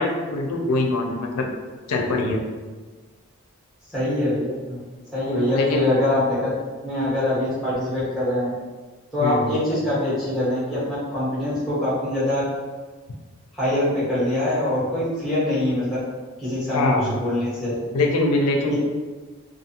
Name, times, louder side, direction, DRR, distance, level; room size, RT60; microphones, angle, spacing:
voice 1, 0.0-1.5 1.9-2.4 5.5-5.9 6.1-6.2 9.2-9.5 16.7-17.2 17.9-18.8, left 2 dB, 85° left, 1 dB, 0.4 m, -23 dB
voice 2, 3.9-4.8 5.1-6.5 6.8-8.5 9.1-12.4 13.5-16.0 16.4-17.8 18.7-18.8, left 1 dB, ahead, -12 dB, 1.1 m, -23 dB
2.4 x 2.4 x 2.7 m, 1.3 s
head